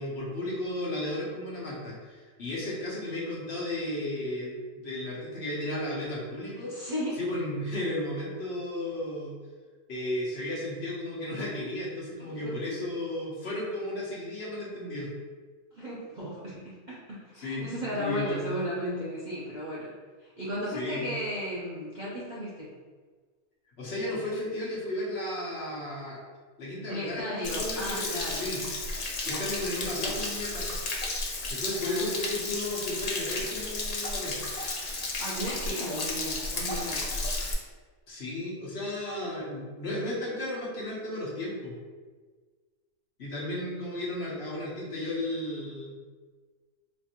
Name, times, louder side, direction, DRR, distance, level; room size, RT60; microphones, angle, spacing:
voice 1, 0.0-6.9 7.2-9.4 9.9-15.1 17.4-18.5 20.7-21.1 23.8-26.2 26.6-28.6 29.2-30.7 31.5-34.4 38.1-41.7 43.2-46.0, left 1 dB, 55° left, -6 dB, 1.1 m, -34 dB
voice 2, 6.6-7.2 12.2-12.5 15.7-19.9 20.2-22.7 26.9-28.5 31.8-32.1 35.2-37.1, equal, 45° right, -8 dB, 0.6 m, -35 dB
Stream / Splash splatter / Trickle dribble, 27.4-37.5, left 2 dB, 75° left, 0.3 m, -33 dB
4.2 x 2.5 x 2.8 m, 1.4 s
omnidirectional pair, 1.4 m